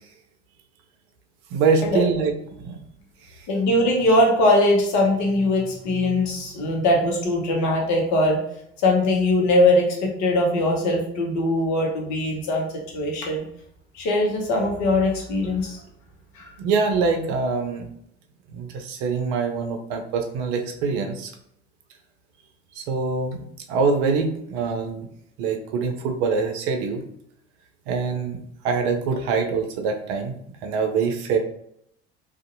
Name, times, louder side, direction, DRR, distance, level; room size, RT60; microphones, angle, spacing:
voice 1, 1.5-2.3 2.6-2.8 16.6-17.9 18.5-21.3 22.8-23.4 23.7-25.1 25.4-27.0 27.9-28.4 28.6-30.3 30.6-31.4, right 5 dB, 60° right, 5 dB, 0.6 m, -24 dB
voice 2, 3.5-8.4 8.8-12.7 12.9-13.4 13.9-15.8 16.3-16.5, left 1 dB, 55° left, 0 dB, 0.9 m, -21 dB
2.6 x 2.4 x 2.5 m, 0.73 s
hypercardioid pair, 65°, 35 cm